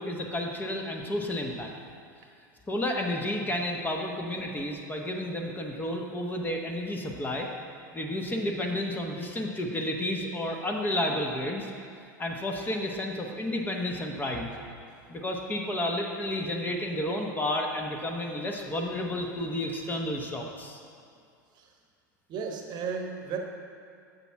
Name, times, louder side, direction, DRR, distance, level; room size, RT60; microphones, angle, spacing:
voice 1, 0.0-1.7 2.7-7.5 7.9-11.7 12.2-14.5 15.1-20.8, left 1 dB, 20° left, 2 dB, 1.0 m, -31 dB
voice 2, 22.3-23.4, right 6 dB, 45° right, 3 dB, 1.0 m, -34 dB
7.3 x 6.7 x 4.6 m, 2.4 s
hypercardioid pair, 95°, 10 cm